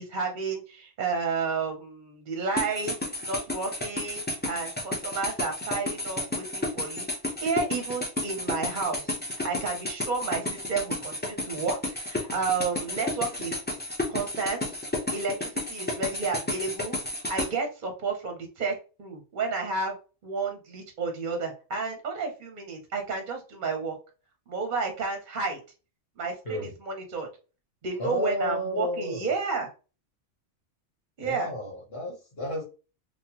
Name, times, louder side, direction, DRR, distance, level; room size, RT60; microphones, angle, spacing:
voice 1, 0.0-2.9 3.2-7.1 7.4-13.6 14.1-14.6 15.1-16.9 17.3-18.7 19.0-19.9 20.2-24.0 24.5-25.6 26.2-27.3 27.8-29.7 31.2-31.5, right 4 dB, 50° right, 4 dB, 0.7 m, -31 dB
sound 1, 2.6-17.5, left 2 dB, 10° left, 0.5 m, -31 dB
voice 2, 28.0-29.3 31.2-32.6, left 1 dB, 55° left, -4 dB, 1.2 m, -32 dB
3.6 x 2.1 x 2.8 m, 0.33 s
omnidirectional pair, 1.2 m